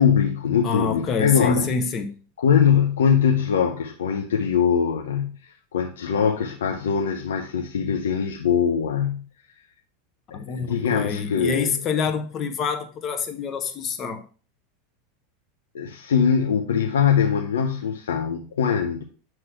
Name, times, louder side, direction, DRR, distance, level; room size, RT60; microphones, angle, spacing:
voice 1, 0.0-1.7 2.4-9.2 10.3-11.7 15.7-19.0, left 7 dB, 75° left, 0.7 m, -22 dB
voice 2, 0.6-2.1 10.3-14.2, left 5 dB, 35° left, 1.2 m, -26 dB
7.8 x 3.1 x 6.0 m
figure-of-eight pair, 85°, 0 cm